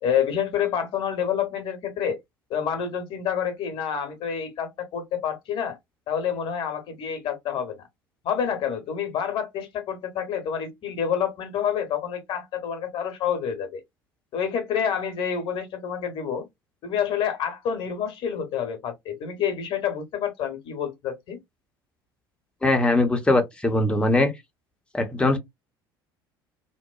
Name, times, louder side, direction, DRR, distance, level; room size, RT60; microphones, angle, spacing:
voice 1, 0.0-2.2 2.5-5.8 6.1-7.8 8.2-13.8 14.3-16.4 16.8-21.4, left 8 dB, 45° left, 0.9 m, -28 dB
voice 2, 22.6-24.3 24.9-25.4, left 2 dB, 10° left, 0.7 m, -21 dB
2.8 x 2.1 x 2.3 m
figure-of-eight pair, 65°, 12 cm